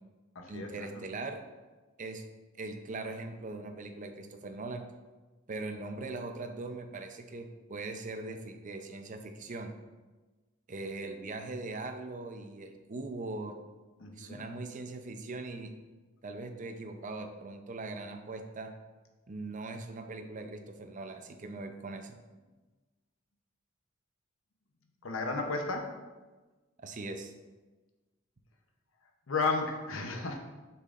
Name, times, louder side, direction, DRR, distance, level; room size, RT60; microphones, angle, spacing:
voice 1, 0.5-1.4 2.0-2.2 2.5-4.8 5.5-9.7 10.7-13.6 14.2-15.7 16.2-18.7 19.3-22.2 26.8-27.3, right 3 dB, 40° right, 6 dB, 0.6 m, -40 dB
voice 2, 14.0-14.4 25.0-25.9 29.3-30.4, left 3 dB, 70° left, 3 dB, 0.8 m, -32 dB
6.7 x 5.7 x 2.5 m, 1.2 s
head